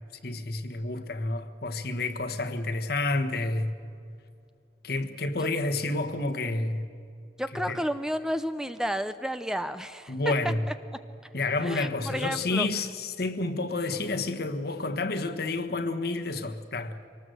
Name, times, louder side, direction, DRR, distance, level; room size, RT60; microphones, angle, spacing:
voice 1, 0.2-3.8 4.8-6.9 7.5-7.8 10.1-10.7 11.3-17.0, left 2 dB, 60° left, 1.4 m, -29 dB
voice 2, 7.4-10.1 10.4-10.5 11.6-12.7, equal, 5° right, 0.5 m, -31 dB
24.5 x 19.0 x 8.0 m
head